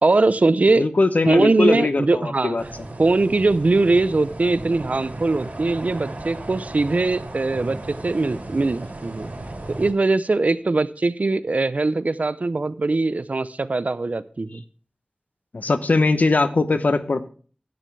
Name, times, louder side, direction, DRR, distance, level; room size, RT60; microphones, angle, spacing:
voice 1, 0.0-0.8 1.3-2.6 3.0-9.3 9.8-14.6, right 3 dB, 65° right, 15 dB, 0.6 m, -21 dB
voice 2, 0.8-2.6 15.5-17.3, left 3 dB, 85° left, 11 dB, 0.8 m, -20 dB
sound 1, 2.6-9.9, right 2 dB, 85° right, 3.4 m, -35 dB
11.5 x 9.3 x 3.3 m, 0.41 s
wide cardioid pair, 50°, 3 cm